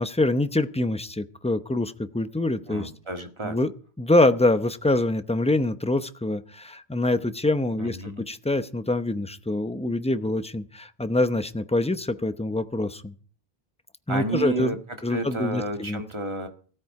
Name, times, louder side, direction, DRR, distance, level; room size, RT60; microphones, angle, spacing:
voice 1, 0.0-2.9 3.4-3.7 4.0-8.0 8.3-13.1 14.1-14.8 15.0-16.0, left 2 dB, 5° left, 10 dB, 0.7 m, -25 dB
voice 2, 2.7-3.6 7.8-8.2 14.1-14.8 15.1-16.5, right 2 dB, 30° right, 5 dB, 1.8 m, -31 dB
16.0 x 13.5 x 4.8 m, 0.42 s
omnidirectional pair, 1.0 m